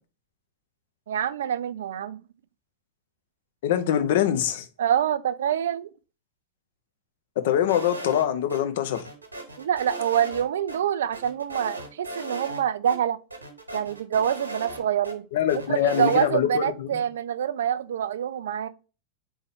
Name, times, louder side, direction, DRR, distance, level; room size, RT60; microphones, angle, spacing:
voice 1, 1.1-2.2 4.8-5.9 9.6-13.2 13.7-15.3 15.5-18.7, right 9 dB, 60° right, 0.3 m, -26 dB
voice 2, 3.6-4.7 7.4-9.0 15.3-17.0, left 10 dB, 55° left, 0.6 m, -24 dB
sound 1, 7.7-8.6 8.9-10.4 10.7-10.8 11.1-12.6 12.9-13.0 13.3-15.1 15.5-16.3, right 1 dB, 80° right, 1.2 m, -37 dB
4.3 x 3.5 x 3.5 m
figure-of-eight pair, 90°, 0 cm